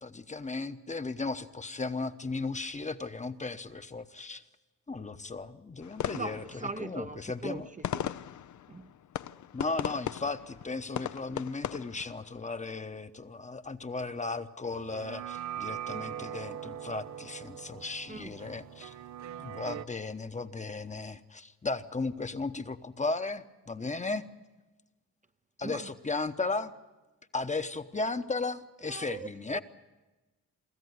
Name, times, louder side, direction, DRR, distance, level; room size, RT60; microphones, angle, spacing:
voice 1, 0.0-4.4 4.9-6.4 6.8-7.7 9.5-18.9 19.4-24.2 25.6-26.7 27.3-29.6, left 3 dB, 25° left, 1.0 m, -35 dB
sound 1, 5.8-12.6, left 11 dB, 65° left, 0.6 m, -38 dB
voice 2, 6.1-8.1 8.7-8.9 18.1-18.4 25.6-26.0 28.8-29.6, right 3 dB, 25° right, 0.7 m, -40 dB
sound 2, 14.7-19.9, right 10 dB, 65° right, 0.6 m, -41 dB
25.0 x 14.0 x 9.6 m
cardioid pair, 90°, 31 cm